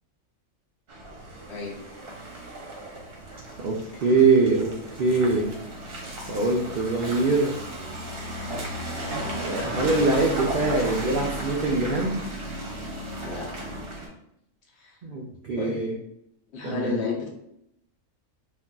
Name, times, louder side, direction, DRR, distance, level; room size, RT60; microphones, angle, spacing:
Car passing by / Engine, 0.9-14.1, right 1 dB, 55° right, 0.8 m, -35 dB
voice 1, 3.6-4.7 5.0-5.5 6.3-7.5 9.4-12.2 15.0-15.9 16.6-17.0, right 3 dB, 75° right, -2 dB, 0.4 m, -23 dB
voice 2, 16.5-17.3, left 4 dB, 60° left, -1 dB, 0.8 m, -31 dB
3.8 x 2.5 x 2.2 m, 0.77 s
omnidirectional pair, 1.4 m